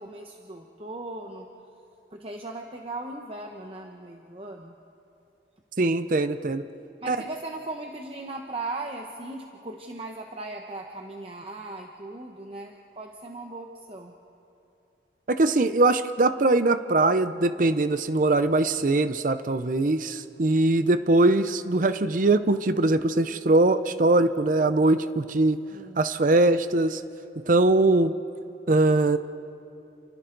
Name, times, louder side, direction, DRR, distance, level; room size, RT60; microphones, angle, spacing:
voice 1, 0.0-1.5 2.1-4.7 7.0-14.2 25.7-26.0, right 2 dB, 30° right, 2 dB, 1.0 m, -38 dB
voice 2, 5.8-6.6 7.1-7.2 15.3-25.6 26.0-27.0 27.5-28.2 28.7-29.2, right 2 dB, 45° right, 11 dB, 0.6 m, -21 dB
29.5 x 29.0 x 3.9 m, 2.8 s
head